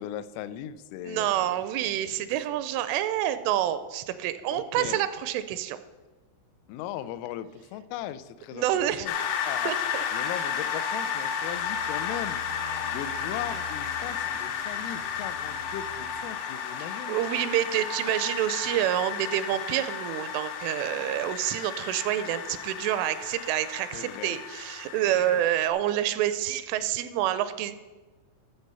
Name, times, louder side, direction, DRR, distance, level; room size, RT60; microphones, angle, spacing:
voice 1, 0.0-1.7 4.5-5.0 6.7-9.1 9.5-9.7 10.1-12.4 12.9-17.2 23.9-24.4 25.0-25.4, left 11 dB, 90° left, 13 dB, 3.2 m, -38 dB
voice 2, 1.0-5.8 8.5-9.1 9.7-9.8 16.9-27.8, right 12 dB, 85° right, 12 dB, 2.9 m, -28 dB
sound 1, 9.0-25.7, left 7 dB, 75° left, 2.8 m, -33 dB
sound 2, 11.1-16.4, left 1 dB, 65° right, 1.1 m, -47 dB
13.5 x 6.6 x 5.4 m, 1.3 s
omnidirectional pair, 5.7 m